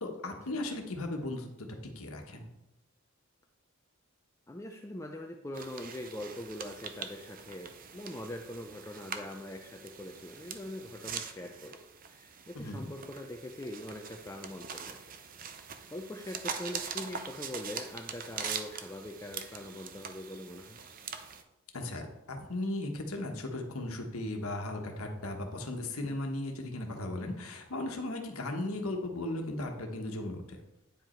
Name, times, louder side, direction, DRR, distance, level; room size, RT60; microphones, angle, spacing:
voice 1, 0.0-2.5 12.5-12.9 21.7-30.6, left 1 dB, 85° left, 3 dB, 1.2 m, -36 dB
voice 2, 4.5-11.8 12.1-15.0 15.9-20.8, left 1 dB, 15° left, 3 dB, 0.4 m, -42 dB
sound 1, 5.5-21.4, right 6 dB, 40° right, 0.6 m, -43 dB
9.2 x 5.1 x 4.4 m, 0.92 s
head